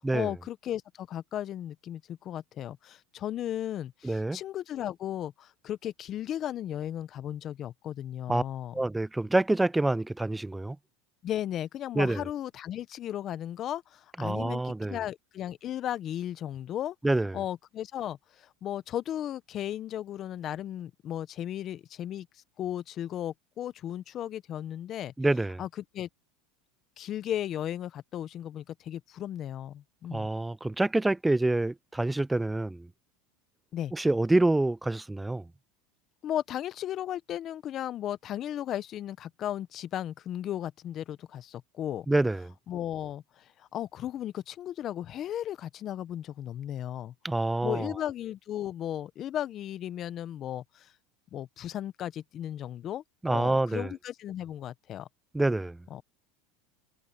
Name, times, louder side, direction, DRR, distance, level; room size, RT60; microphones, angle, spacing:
voice 1, 0.1-8.8 11.2-17.0 17.3-22.3 22.6-25.1 25.6-25.7 25.9-26.1 27.0-30.3 33.7-33.9 36.2-42.1 42.7-47.1 47.6-50.9 51.3-55.1 55.9-56.0, left 11 dB, 40° left, 0.8 m, -35 dB
voice 2, 4.0-4.4 8.3-8.4 8.7-10.8 12.0-12.2 14.2-15.0 17.0-17.4 25.2-25.6 30.1-32.9 33.9-35.5 42.1-42.5 47.2-47.9 53.2-53.9 55.3-55.8, right 2 dB, 5° right, 0.3 m, -27 dB
supercardioid pair, 115°, 0 cm